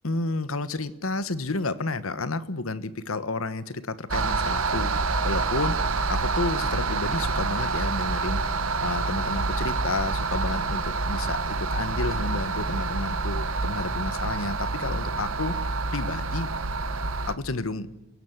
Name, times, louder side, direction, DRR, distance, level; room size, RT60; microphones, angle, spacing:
voice 1, 0.0-16.5 17.3-17.9, left 3 dB, 90° left, 15 dB, 1.3 m, -31 dB
sound 1, 4.1-17.3, right 3 dB, 85° right, 1.4 m, -27 dB
28.0 x 17.0 x 8.0 m, 0.99 s
head